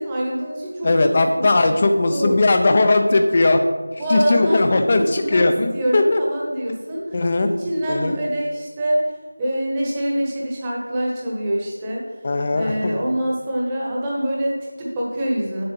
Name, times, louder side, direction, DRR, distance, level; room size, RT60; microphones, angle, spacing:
voice 1, 0.0-1.1 1.4-1.5 2.1-2.4 4.0-5.4 5.7-7.2 7.6-9.0 9.4-12.2 12.5-15.6, right 1 dB, 10° right, -5 dB, 1.2 m, -25 dB
voice 2, 0.8-3.6 4.1-6.2 7.1-7.5 7.9-8.2 12.2-13.0, left 2 dB, 25° left, 6 dB, 0.7 m, -18 dB
7.7 x 7.7 x 5.4 m, 1.3 s
figure-of-eight pair, 175°, 0 cm